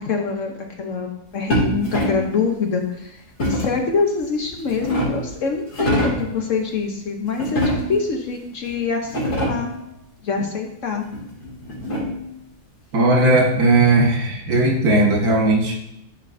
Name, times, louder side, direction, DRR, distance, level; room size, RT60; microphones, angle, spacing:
voice 1, 0.0-3.2 3.5-9.7 10.2-11.1, left 5 dB, 60° left, 3 dB, 1.0 m, -25 dB
sound 1, 1.5-2.3 3.4-3.8 4.5-5.3 5.7-6.3 7.4-8.1 8.7-8.8 9.0-9.8 11.1-12.3, equal, 75° left, 2.8 m, -24 dB
voice 2, 12.9-15.7, right 2 dB, 70° right, -1 dB, 1.9 m, -17 dB
11.5 x 4.5 x 2.5 m, 0.81 s
omnidirectional pair, 1.7 m